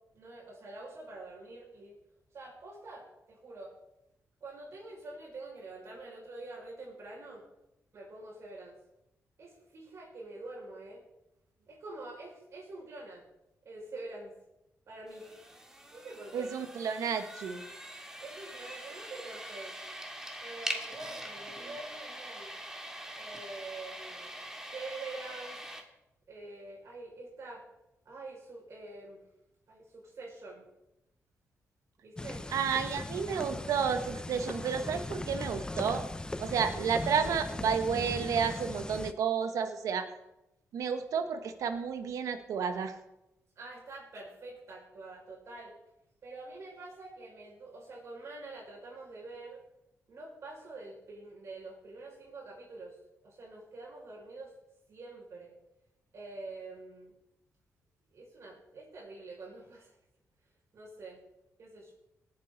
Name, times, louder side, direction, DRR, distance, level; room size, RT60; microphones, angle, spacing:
voice 1, 0.1-2.0 2.3-3.7 4.4-7.4 7.9-8.8 9.4-11.0 11.7-13.2 13.6-14.3 14.9-15.3 15.9-16.5 18.2-19.8 20.4-22.6 23.1-24.4 24.7-25.6 26.3-27.6 28.0-29.2 29.7-30.7 32.0-32.5 36.6-36.8 43.6-45.7 46.2-49.6 50.1-53.0 53.2-54.5 54.9-55.5 56.1-57.1 58.1-59.9 60.7-61.2 61.6-61.9, right 2 dB, 60° right, -3 dB, 5.8 m, -46 dB
sound 1, 15.1-25.8, right 1 dB, 10° right, 2.0 m, -43 dB
voice 2, 16.3-17.6 32.5-36.1 36.4-40.1 40.7-43.0, right 6 dB, 80° right, 9 dB, 1.2 m, -31 dB
sound 2, 32.2-39.1, left 2 dB, 15° left, 0.6 m, -39 dB
19.0 x 8.6 x 4.0 m, 0.90 s
cardioid pair, 90°, 6 cm